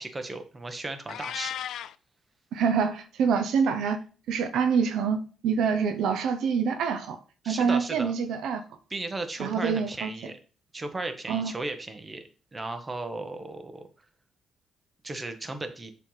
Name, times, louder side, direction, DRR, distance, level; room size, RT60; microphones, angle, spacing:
voice 1, 0.0-1.5 7.4-8.1 8.9-10.4 10.7-12.2 12.5-13.9 15.0-15.9, right 2 dB, 25° right, 7 dB, 1.2 m, -35 dB
Meow, 1.1-2.0, left 10 dB, 75° left, 0.3 m, -35 dB
voice 2, 2.5-4.0 4.3-5.2 5.4-7.2 7.5-8.6 9.4-10.1 11.3-11.5, right 6 dB, 80° right, 7 dB, 0.7 m, -26 dB
7.5 x 3.4 x 5.6 m, 0.38 s
cardioid pair, 90°, 0 cm